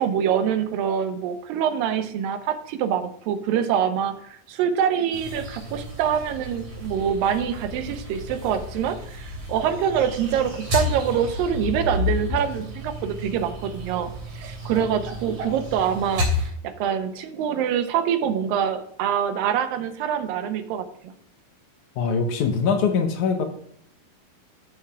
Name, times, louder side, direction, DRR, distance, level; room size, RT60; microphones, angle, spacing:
voice 1, 0.0-16.3 16.6-21.1, right 8 dB, 90° right, 9 dB, 2.5 m, -25 dB
sound 1, 5.1-16.5, left 2 dB, 50° right, 3.9 m, -31 dB
voice 2, 22.0-23.4, left 5 dB, 70° left, 5 dB, 2.1 m, -22 dB
14.0 x 6.5 x 2.3 m, 0.69 s
omnidirectional pair, 4.0 m